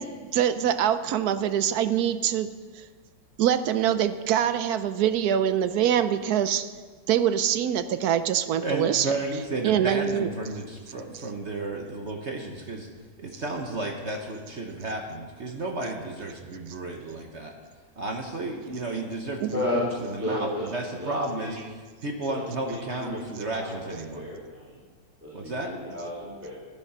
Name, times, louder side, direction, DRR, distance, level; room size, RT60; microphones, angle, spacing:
voice 1, 0.0-2.5 3.4-6.7 7.1-9.1 9.6-10.3 19.4-19.5, right 10 dB, 70° right, 12 dB, 1.0 m, -24 dB
voice 2, 8.6-12.9 13.2-17.5 18.0-21.7 22.0-24.3 25.3-25.7, right 2 dB, 45° right, 2 dB, 1.2 m, -33 dB
voice 3, 19.5-19.9 20.2-20.6 20.9-21.5 22.2-22.4 22.7-24.7 25.2-26.5, left 1 dB, 5° right, -7 dB, 2.7 m, -33 dB
14.0 x 10.5 x 5.6 m, 1.5 s
omnidirectional pair, 2.0 m